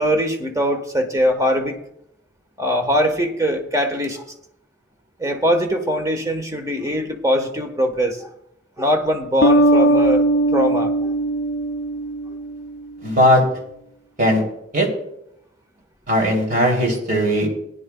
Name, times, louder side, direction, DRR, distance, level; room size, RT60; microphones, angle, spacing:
voice 1, 0.0-1.8 2.6-4.3 5.2-8.3 8.8-11.1, equal, 20° right, 5 dB, 1.2 m, -21 dB
sound 1, 9.4-12.8, right 1 dB, 80° left, 0.5 m, -19 dB
voice 2, 13.0-13.4 14.2-14.4 14.7-14.9 16.1-17.5, equal, 50° right, 1 dB, 3.0 m, -17 dB
18.0 x 10.5 x 2.3 m, 0.77 s
head